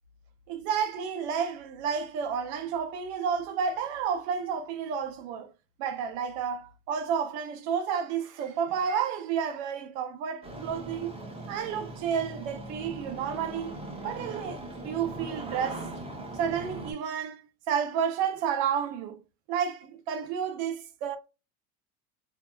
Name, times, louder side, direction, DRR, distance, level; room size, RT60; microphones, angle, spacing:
voice 1, 0.5-5.5 5.8-11.1 11.5-13.7 14.0-15.9 16.3-19.2 19.5-21.2, right 7 dB, 65° right, 0.7 m, -31 dB
Engine starting, 10.4-16.9, right 2 dB, 15° right, 0.7 m, -40 dB
2.7 x 2.3 x 2.2 m
supercardioid pair, 115°, 42 cm